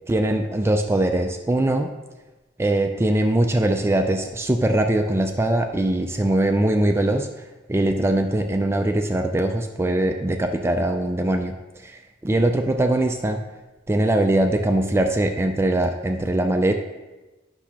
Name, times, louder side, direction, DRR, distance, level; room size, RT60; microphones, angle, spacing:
voice 1, 0.1-1.9 2.6-7.3 7.7-11.5 11.8-13.4 13.9-16.7, right 1 dB, 15° right, 5 dB, 0.3 m, -21 dB
10.0 x 6.0 x 2.9 m, 1.1 s
head